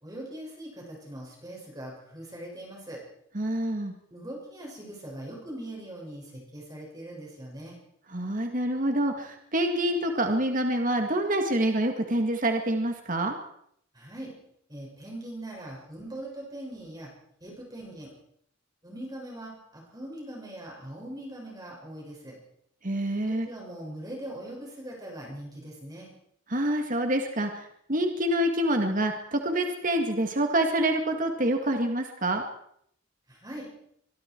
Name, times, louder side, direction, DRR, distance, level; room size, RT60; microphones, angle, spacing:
voice 1, 0.0-3.0 4.1-7.8 13.9-14.3 14.7-17.1 17.4-18.1 18.8-22.3 23.3-26.1 33.3-33.7, right 1 dB, 20° right, -2 dB, 6.5 m, -41 dB
voice 2, 3.3-3.9 8.1-13.3 22.8-23.5 26.5-32.4, right 1 dB, 40° right, 4 dB, 2.1 m, -26 dB
24.5 x 23.0 x 4.7 m, 0.70 s
head